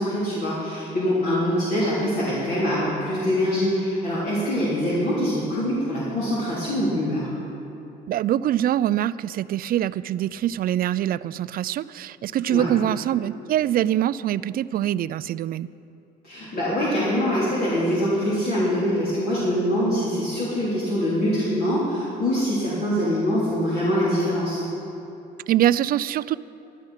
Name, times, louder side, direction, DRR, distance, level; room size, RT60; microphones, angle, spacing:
voice 1, 0.0-7.3 12.5-12.7 16.2-24.6, equal, 55° left, -8 dB, 3.5 m, -24 dB
voice 2, 8.1-15.7 25.5-26.4, right 12 dB, 50° right, 18 dB, 0.4 m, -24 dB
12.5 x 12.0 x 5.7 m, 2.8 s
supercardioid pair, 85°, 19 cm